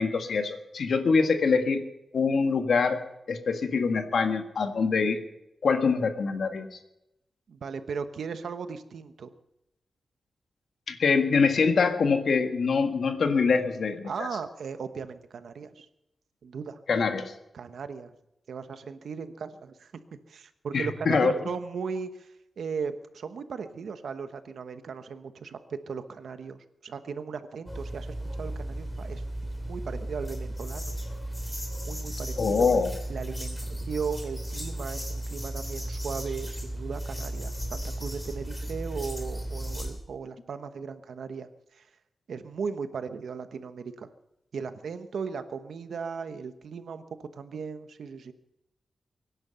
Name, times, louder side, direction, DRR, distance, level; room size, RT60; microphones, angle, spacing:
voice 1, 0.0-1.8 2.1-3.0 3.3-5.2 5.6-6.8 10.9-14.3 16.9-17.3 20.7-21.3 32.4-32.9, left 5 dB, 65° left, 6 dB, 1.6 m, -24 dB
voice 2, 7.5-9.3 14.0-15.9 16.4-16.8 17.5-18.1 18.5-25.6 25.9-29.2 29.6-31.0 31.9-32.7 33.1-41.9 42.3-44.1 44.5-48.3, right 5 dB, 80° right, 10 dB, 1.1 m, -37 dB
sound 1, 27.7-39.9, right 1 dB, 10° left, 3.2 m, -35 dB
24.0 x 10.5 x 5.7 m, 0.90 s
wide cardioid pair, 170°, 0 cm